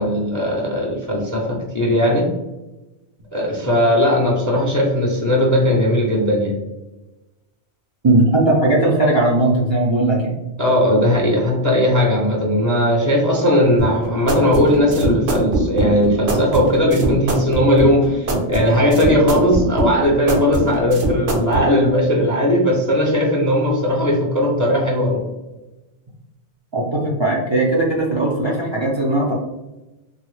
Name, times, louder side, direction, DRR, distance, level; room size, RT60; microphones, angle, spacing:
voice 1, 0.0-2.3 3.3-6.5 10.6-25.2, left 1 dB, 25° left, -2 dB, 0.4 m, -18 dB
voice 2, 8.0-10.4 26.7-29.3, right 2 dB, 40° right, -4 dB, 0.4 m, -18 dB
sound 1, 13.8-21.6, right 2 dB, 70° right, 1.0 m, -22 dB
3.8 x 2.0 x 3.0 m, 1.0 s
omnidirectional pair, 1.1 m